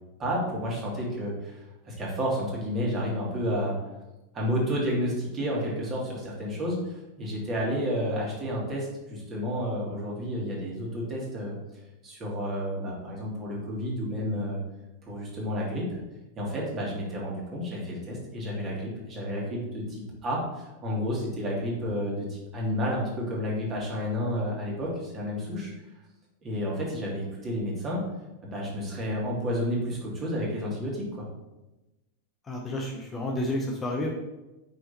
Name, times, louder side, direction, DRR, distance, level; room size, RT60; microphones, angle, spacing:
voice 1, 0.2-1.6 1.8-3.7 4.3-6.8 7.2-11.5 12.0-14.6 15.0-15.9 16.4-25.7 26.4-28.0 28.4-31.3, equal, 25° right, -3 dB, 2.1 m, -31 dB
voice 2, 32.4-34.1, left 1 dB, 20° left, 0 dB, 0.9 m, -30 dB
5.6 x 5.0 x 4.2 m, 1.0 s
figure-of-eight pair, 90°, 0 cm